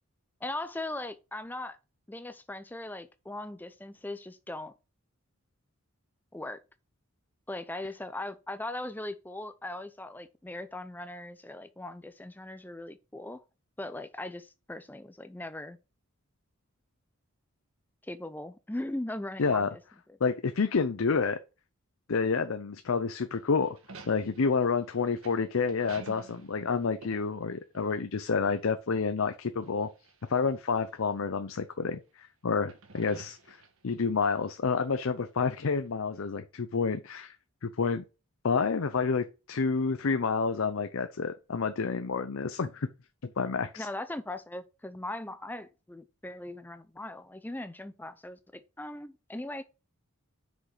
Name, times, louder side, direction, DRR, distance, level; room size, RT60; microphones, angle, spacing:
voice 1, 0.4-1.8 2.1-4.7 6.3-6.6 7.5-13.4 13.8-15.8 18.0-19.8 43.8-49.6, left 1 dB, 10° left, 0.4 m, -39 dB
voice 2, 19.4-19.7 20.2-21.4 22.1-23.8 24.1-29.9 30.3-33.6 33.8-37.4 37.6-38.0 38.4-42.9 43.2-43.9, left 5 dB, 65° left, 0.6 m, -29 dB
sound 1, 23.3-28.2 28.5-28.6 29.6-30.4 31.1-31.2 32.6-34.0, right 3 dB, 70° right, 1.3 m, -50 dB
6.1 x 5.3 x 4.9 m
head